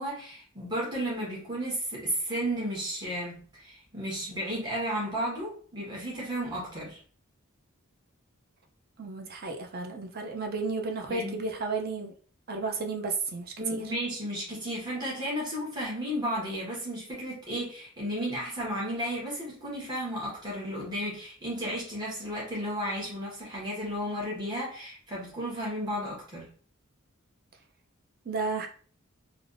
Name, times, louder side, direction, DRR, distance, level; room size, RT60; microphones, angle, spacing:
voice 1, 0.0-7.0 11.1-11.4 13.6-26.4, equal, 20° right, -6 dB, 1.2 m, -33 dB
voice 2, 9.0-12.1 12.5-13.8 28.3-28.7, right 3 dB, 45° right, 4 dB, 0.5 m, -33 dB
3.4 x 2.4 x 2.5 m, 0.43 s
head